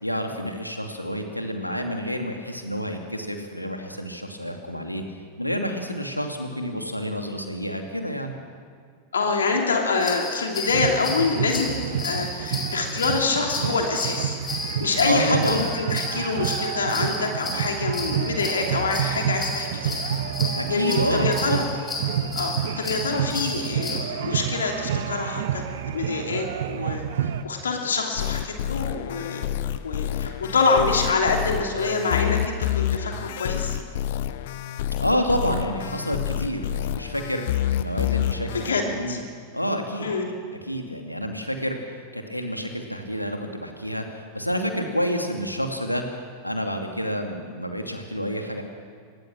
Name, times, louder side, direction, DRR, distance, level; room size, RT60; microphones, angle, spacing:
voice 1, 0.0-5.0 5.4-8.3 15.0-15.7 20.6-21.6 35.0-37.5 37.8-39.2 39.5-40.1 40.7-41.8 42.1-46.0 46.4-48.6, equal, 90° left, 3 dB, 2.6 m, -28 dB
voice 2, 9.1-14.4 14.8-20.0 20.7-21.6 22.3-25.6 25.9-29.4 29.8-33.8 38.5-39.2 40.0-40.3, left 4 dB, 70° left, 2 dB, 2.9 m, -26 dB
sound 1, 10.0-24.0, left 3 dB, 15° left, 5.9 m, -33 dB
sound 2, 10.7-27.4, right 9 dB, 60° right, 1.1 m, -29 dB
sound 3, 28.2-38.7, left 12 dB, 55° left, 0.9 m, -28 dB
25.5 x 21.0 x 6.3 m, 2.1 s
figure-of-eight pair, 90°, 0 cm